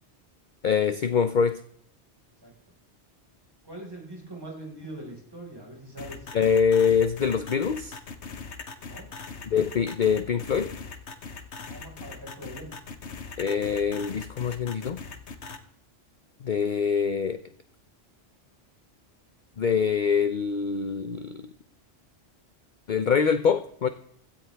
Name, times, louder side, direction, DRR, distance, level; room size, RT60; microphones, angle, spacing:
voice 1, 0.6-1.6 6.3-8.0 9.5-10.7 13.4-15.0 16.4-17.4 19.6-21.5 22.9-23.9, left 6 dB, 50° left, 11 dB, 0.7 m, -24 dB
voice 2, 3.6-6.3 8.8-9.1 11.6-12.7, right 1 dB, 20° right, -2 dB, 5.0 m, -42 dB
sound 1, 6.0-15.6, left 4 dB, 75° left, 1.5 m, -40 dB
16.0 x 14.0 x 3.4 m, 0.68 s
omnidirectional pair, 1.2 m